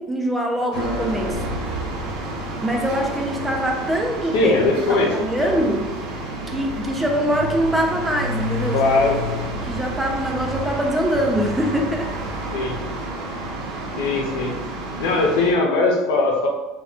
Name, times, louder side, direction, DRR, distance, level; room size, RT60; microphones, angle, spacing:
voice 1, 0.0-1.6 2.6-4.6 4.9-5.9 6.5-8.9 9.6-12.1, equal, 5° right, 1 dB, 0.4 m, -23 dB
sound 1, 0.7-15.5, right 1 dB, 70° right, 0.6 m, -30 dB
Piano, 0.8-7.9, right 1 dB, 55° left, 0.8 m, -39 dB
voice 2, 4.3-5.6 8.7-9.2 12.5-12.8 14.0-14.6 15.0-16.5, left 3 dB, 85° left, 0 dB, 0.6 m, -20 dB
2.2 x 2.2 x 3.6 m, 1.1 s
cardioid pair, 145°, 0 cm